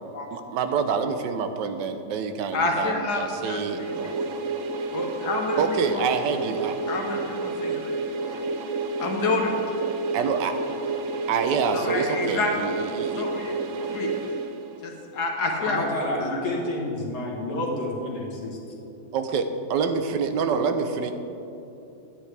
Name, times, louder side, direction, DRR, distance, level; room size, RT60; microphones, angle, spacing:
voice 1, 0.3-4.2 5.6-6.7 10.1-10.5 11.3-13.3 19.1-21.1, right 5 dB, 90° right, 8 dB, 1.3 m, -27 dB
voice 2, 2.5-4.1 4.9-5.6 5.9-6.0 6.9-8.4 9.0-9.7 11.7-12.5 13.2-13.5 13.8-14.1 14.8-15.8 16.2-16.4, left 3 dB, 70° left, 1 dB, 1.6 m, -29 dB
sound 1, 3.3-15.1, right 3 dB, 65° right, 0.8 m, -30 dB
voice 3, 15.6-18.6, left 1 dB, 45° left, -3 dB, 1.7 m, -29 dB
10.0 x 9.9 x 3.3 m, 2.8 s
omnidirectional pair, 1.9 m